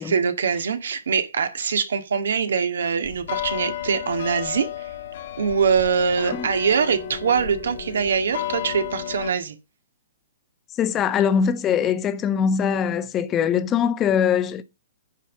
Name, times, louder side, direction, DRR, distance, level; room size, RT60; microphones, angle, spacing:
voice 1, 0.0-4.9 5.4-9.6, right 6 dB, 75° right, 2.0 m, -23 dB
sound 1, 3.0-9.3, left 10 dB, 60° left, 2.1 m, -33 dB
voice 2, 10.8-14.6, left 7 dB, 25° left, 1.1 m, -22 dB
9.8 x 5.4 x 7.4 m
hypercardioid pair, 120°, 0 cm